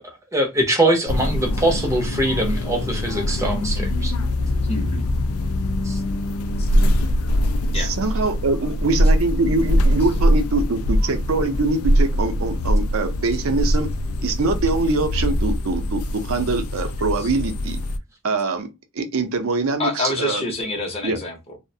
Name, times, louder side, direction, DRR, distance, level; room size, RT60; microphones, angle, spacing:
voice 1, 0.0-4.1 5.8-6.0, right 1 dB, 15° right, 0.5 m, -22 dB
sound 1, 1.1-18.0, equal, 75° left, 0.3 m, -22 dB
voice 2, 4.6-5.0 7.7-8.0 17.2-17.3 19.8-21.6, left 1 dB, 25° left, 0.7 m, -27 dB
voice 3, 7.7-13.9 14.2-17.8 18.2-18.7 19.0-20.4 21.0-21.2, right 3 dB, 65° right, 0.5 m, -23 dB
2.3 x 2.1 x 2.6 m
head